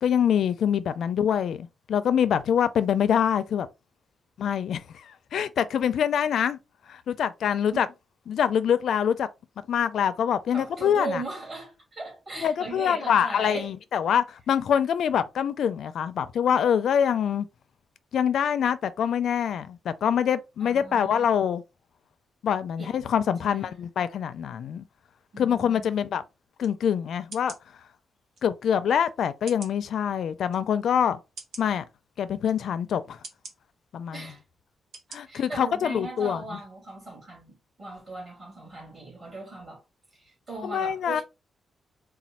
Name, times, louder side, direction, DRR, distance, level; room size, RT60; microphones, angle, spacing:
voice 1, 0.0-3.7 4.4-6.6 6.9-7.9 8.3-9.3 9.7-11.2 12.4-17.5 18.1-21.6 22.4-24.8 25.4-26.2 26.6-27.5 28.4-31.2 31.6-31.8 32.2-33.2 33.9-34.3 35.1-36.4 40.6-41.2, left 8 dB, 65° left, 0.4 m, -25 dB
voice 2, 10.5-13.7 20.6-21.3 22.8-23.0 23.4-23.7 25.3-26.0 34.1-34.4 35.3-39.8 40.1-41.2, right 2 dB, 35° right, 2.6 m, -38 dB
sound 1, 26.6-26.7 27.3-27.6 28.4-28.5 29.5-29.8 30.5-30.6 31.4-31.7 32.4-32.6 33.2-33.6 34.3-34.4 34.9-35.2 35.6-35.7, right 3 dB, 75° right, 1.2 m, -43 dB
4.2 x 2.2 x 4.2 m
wide cardioid pair, 170°, 0 cm